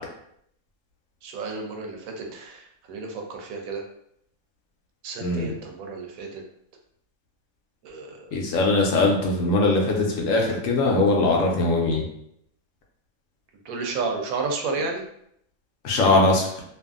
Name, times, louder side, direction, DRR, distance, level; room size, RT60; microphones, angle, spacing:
voice 1, 1.2-3.8 5.0-6.4 7.8-8.4 13.7-15.0, right 4 dB, 85° right, 2 dB, 1.0 m, -32 dB
voice 2, 5.2-5.5 8.3-12.0 15.8-16.5, left 2 dB, 75° left, -1 dB, 1.0 m, -21 dB
2.6 x 2.4 x 2.4 m, 0.72 s
omnidirectional pair, 1.4 m